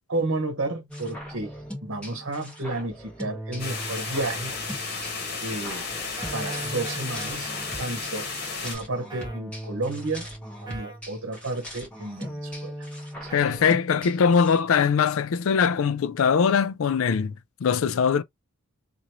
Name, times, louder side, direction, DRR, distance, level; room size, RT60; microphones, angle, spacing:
voice 1, 0.1-1.5 1.8-5.1 5.4-5.9 6.3-7.5 7.8-8.3 8.6-10.3 10.6-12.9 13.2-13.3, right 2 dB, 60° right, 1.0 m, -32 dB
sound 1, 0.9-14.6, equal, 5° left, 1.1 m, -39 dB
sound 2, 3.6-8.8, left 4 dB, 45° left, 1.3 m, -33 dB
sound 3, 6.2-7.4 9.1-9.4 10.7-11.0 13.3-13.6, right 5 dB, 20° right, 0.6 m, -41 dB
voice 2, 13.3-17.3 17.6-18.2, left 6 dB, 70° left, 0.4 m, -21 dB
2.9 x 2.6 x 2.9 m
head